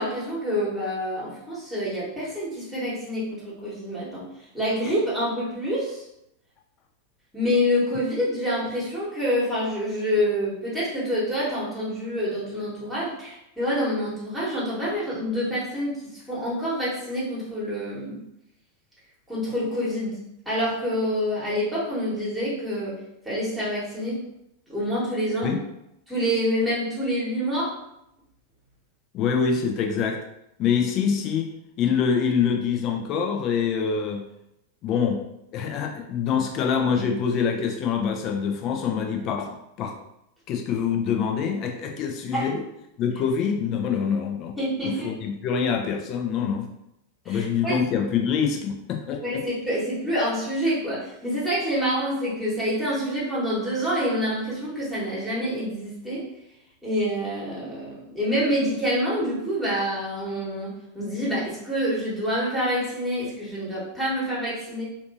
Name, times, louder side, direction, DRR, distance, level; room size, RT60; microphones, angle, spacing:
voice 1, 0.0-4.2 4.5-6.0 7.3-18.2 19.3-20.2 20.4-23.0 23.2-24.2 24.7-25.5 26.1-27.7 42.3-42.5 44.6-45.1 47.2-47.8 49.2-56.3 56.8-64.8, equal, 5° right, -8 dB, 1.3 m, -27 dB
voice 2, 29.1-30.2 30.6-31.5 31.8-34.2 34.8-35.2 35.5-39.9 40.5-42.6 43.0-44.6 44.8-46.7 47.3-49.4, left 6 dB, 35° left, 2 dB, 0.5 m, -25 dB
3.5 x 2.6 x 2.6 m, 0.82 s
figure-of-eight pair, 90°, 0 cm